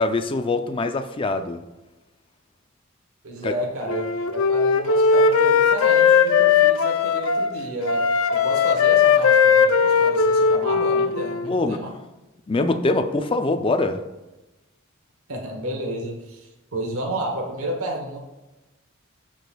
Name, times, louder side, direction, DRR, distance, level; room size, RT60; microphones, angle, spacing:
voice 1, 0.0-1.6 3.4-3.5 11.5-11.8 12.5-14.0, left 2 dB, 25° left, 7 dB, 0.4 m, -23 dB
voice 2, 3.2-11.9 15.3-18.2, right 1 dB, 90° right, 1 dB, 1.1 m, -31 dB
Wind instrument woodwind instrument, 3.9-7.5 7.8-11.5, left 6 dB, 80° left, 0.5 m, -18 dB
12.5 x 5.0 x 2.3 m, 1.0 s
head